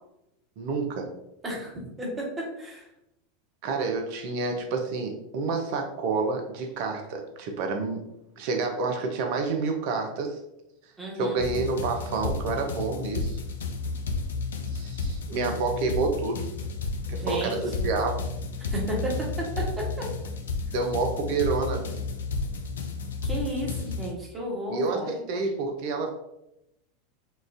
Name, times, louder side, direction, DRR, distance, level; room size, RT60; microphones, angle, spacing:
voice 1, 0.6-1.1 3.6-8.0 8.4-10.4 11.1-13.4 14.7-16.4 17.1-18.1 20.7-21.8 24.7-26.1, right 4 dB, 55° right, 3 dB, 0.5 m, -28 dB
voice 2, 2.0-2.8 11.0-11.4 17.1-17.9 18.6-19.1 23.2-25.1, right 1 dB, 20° right, -3 dB, 1.2 m, -33 dB
sound 1, 11.4-24.1, left 4 dB, 75° left, 0.4 m, -32 dB
3.8 x 2.4 x 2.6 m, 0.85 s
hypercardioid pair, 90°, 0 cm